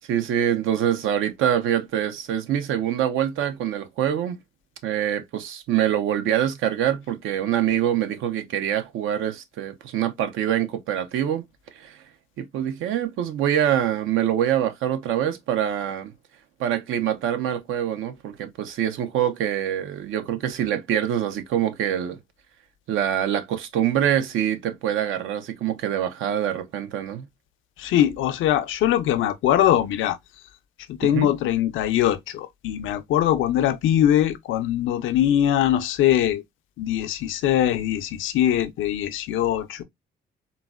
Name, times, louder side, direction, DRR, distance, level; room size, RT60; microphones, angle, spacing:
voice 1, 0.1-4.4 4.8-11.4 11.7-12.0 12.4-16.1 16.6-22.2 22.9-27.3 31.0-31.3, right 10 dB, 85° right, 0.6 m, -25 dB
voice 2, 27.8-30.2 30.9-36.4 36.8-39.8, left 11 dB, 80° left, 0.5 m, -22 dB
3.8 x 2.0 x 2.2 m
cardioid pair, 90°, 20 cm